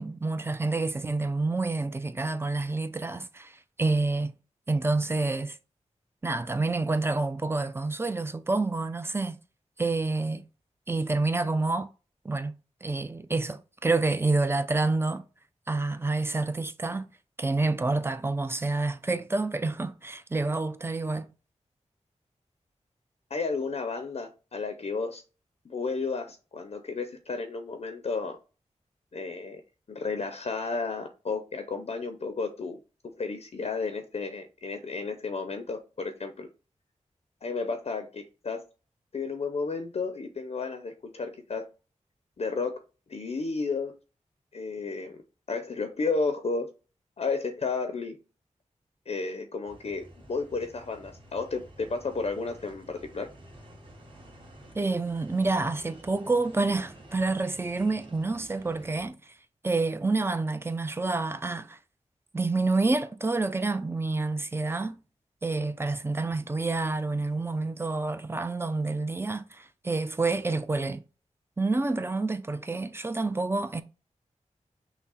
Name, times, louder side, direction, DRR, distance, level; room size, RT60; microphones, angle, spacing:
voice 1, 0.0-4.3 4.7-5.6 6.2-9.4 9.8-10.4 10.9-11.9 12.2-15.2 15.7-17.1 17.4-21.3 54.8-59.2 59.6-61.8 62.3-65.0 65.4-71.0 71.6-73.8, right 3 dB, 20° right, 0.5 m, -28 dB
voice 2, 23.3-25.2 25.6-28.4 29.1-29.6 29.9-32.8 33.0-36.5 37.4-38.6 39.1-41.7 42.4-42.8 43.1-43.9 44.5-45.2 45.5-46.7 47.2-48.2 49.1-53.3, left 4 dB, 60° left, 0.6 m, -32 dB
sound 1, 49.6-59.1, right 1 dB, 45° right, 1.5 m, -51 dB
6.0 x 2.1 x 4.0 m
wide cardioid pair, 85°, 13 cm